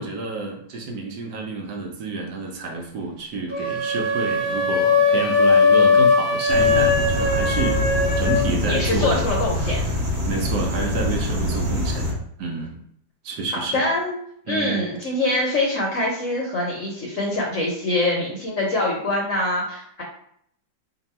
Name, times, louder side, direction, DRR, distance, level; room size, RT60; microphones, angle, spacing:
voice 1, 0.0-7.8 8.2-9.3 9.6-12.8 13.2-13.8 14.5-14.8 15.4-15.5, right 3 dB, 70° right, 1 dB, 1.2 m, -29 dB
sound 1, 3.5-8.5, left 4 dB, 25° right, 0.6 m, -19 dB
sound 2, 6.5-12.1, left 1 dB, 50° right, 0.9 m, -25 dB
voice 2, 8.7-9.8 13.7-14.2 14.5-20.0, left 2 dB, 55° left, -2 dB, 0.9 m, -24 dB
2.9 x 2.6 x 4.1 m, 0.68 s
omnidirectional pair, 2.0 m